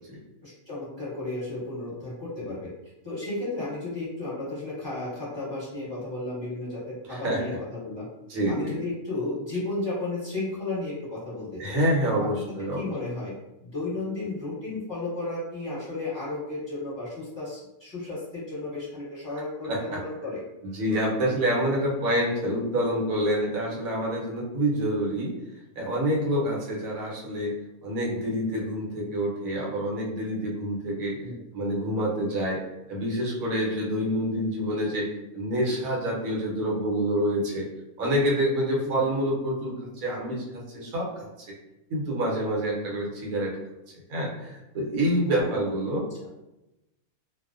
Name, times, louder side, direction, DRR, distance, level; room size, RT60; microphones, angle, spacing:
voice 1, 0.4-2.7 3.0-8.1 8.5-11.8 12.2-12.3 12.7-13.3 13.6-20.4 31.2-31.3 38.8-39.0 45.2-45.7 46.2-46.3, left 2 dB, 20° left, -10 dB, 1.0 m, -33 dB
voice 2, 7.1-7.6 8.3-8.8 11.6-12.9 19.7-20.0 20.6-25.3 25.8-27.5 27.8-31.2 31.5-32.6 32.9-37.7 38.0-41.3 41.9-43.6 44.1-46.3, equal, 85° right, -3 dB, 1.1 m, -27 dB
2.4 x 2.1 x 2.4 m, 0.95 s
omnidirectional pair, 1.4 m